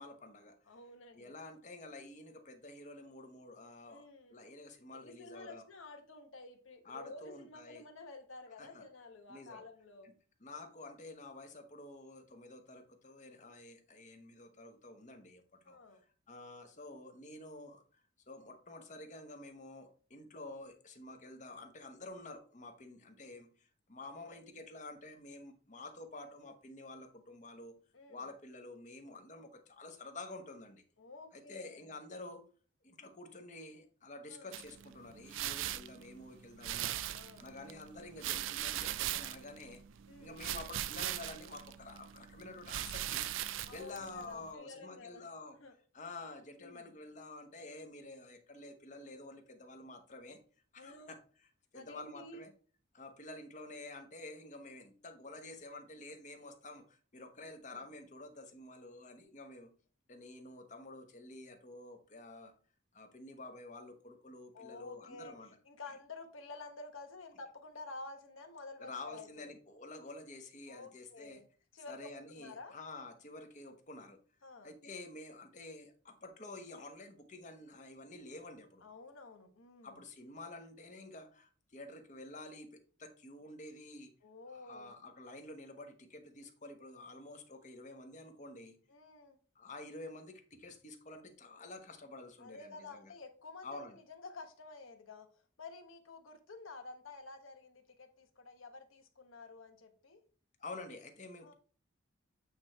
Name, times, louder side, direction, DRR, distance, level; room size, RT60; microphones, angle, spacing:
voice 1, 0.0-0.6 1.1-4.0 4.3-5.6 6.8-7.8 8.6-8.8 9.3-9.6 10.4-16.0 16.3-18.0 18.3-27.8 28.1-30.8 31.3-32.4 32.8-37.1 37.4-39.8 40.2-43.2 43.7-45.6 45.9-50.4 50.7-51.2 51.7-52.5 52.9-59.7 60.1-62.5 62.9-65.5 68.8-71.4 71.9-74.2 74.6-78.8 79.8-84.1 84.5-88.8 89.5-93.1 93.6-94.0 100.6-101.5, left 2 dB, 40° left, 6 dB, 1.0 m, -49 dB
voice 2, 0.7-1.4 3.9-4.4 4.9-10.1 15.6-16.0 27.9-28.3 31.0-31.9 34.3-34.5 36.8-37.5 40.1-40.4 43.7-45.3 45.6-45.7 46.6-46.9 50.8-51.1 51.7-52.4 57.4-57.8 64.5-69.5 70.7-71.5 71.7-72.7 74.4-74.7 78.8-80.0 84.2-85.0 88.9-89.4 92.4-100.2 101.4-101.5, left 3 dB, 90° left, 6 dB, 1.2 m, -51 dB
sound 1, 34.5-44.5, right 12 dB, 75° right, 0.4 m, -40 dB
8.6 x 3.2 x 4.3 m, 0.40 s
head